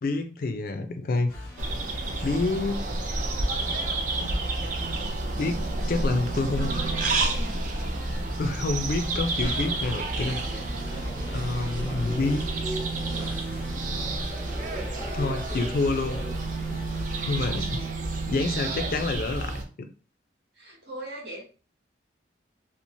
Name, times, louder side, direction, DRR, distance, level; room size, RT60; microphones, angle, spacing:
voice 1, 0.0-1.4 2.2-2.8 4.1-4.3 5.4-6.7 8.4-10.6 11.3-12.5 15.1-16.2 16.7-16.8 17.3-17.8 18.3-19.6, left 3 dB, 50° left, 7 dB, 0.4 m, -28 dB
sound 1, 1.3-17.6, left 1 dB, 5° left, 0.9 m, -41 dB
sound 2, 1.6-19.6, right 2 dB, 45° right, 0.4 m, -30 dB
voice 2, 6.3-7.6 12.9-13.4 17.3-17.9 18.4-18.6 20.5-21.4, right 1 dB, 60° right, -3 dB, 1.2 m, -41 dB
sound 3, 9.3-16.3, right 1 dB, 25° right, 1.0 m, -40 dB
3.0 x 2.0 x 2.6 m, 0.35 s
head